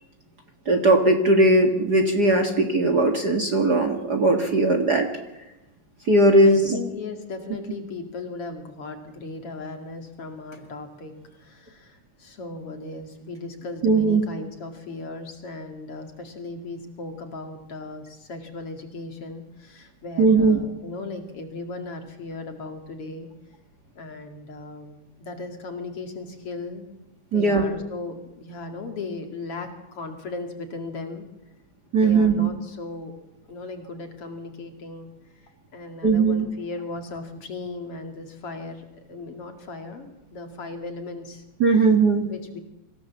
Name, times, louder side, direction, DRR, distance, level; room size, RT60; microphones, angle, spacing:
voice 1, 0.7-5.1 6.1-6.8 13.8-14.3 20.2-20.6 27.3-27.6 31.9-32.5 36.0-36.5 41.6-42.3, right 2 dB, 40° right, 4 dB, 2.0 m, -19 dB
voice 2, 6.4-23.3 23.9-26.9 27.3-31.3 31.9-33.2 33.5-41.4 42.3-42.6, left 3 dB, 50° left, 5 dB, 3.0 m, -37 dB
25.5 x 16.5 x 7.3 m, 0.93 s
omnidirectional pair, 3.5 m